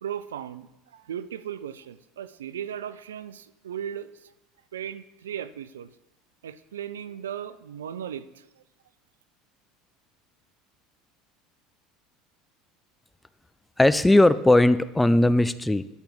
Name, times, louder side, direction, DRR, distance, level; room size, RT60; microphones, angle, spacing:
voice 1, 0.0-4.3 4.7-5.9 6.4-8.6, right 9 dB, 85° right, 14 dB, 0.3 m, -37 dB
voice 2, 13.8-15.8, left 1 dB, 10° left, 15 dB, 0.4 m, -18 dB
9.5 x 4.5 x 5.2 m, 0.95 s
hypercardioid pair, 80°, 0 cm